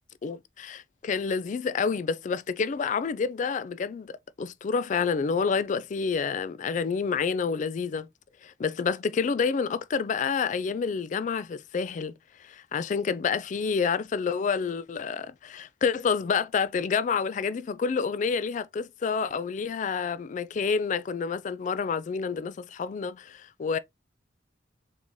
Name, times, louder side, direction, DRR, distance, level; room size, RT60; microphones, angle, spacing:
voice 1, 0.2-8.1 8.4-12.1 12.4-23.8, left 5 dB, 45° left, 0.3 m, -28 dB
4.0 x 3.6 x 3.0 m
head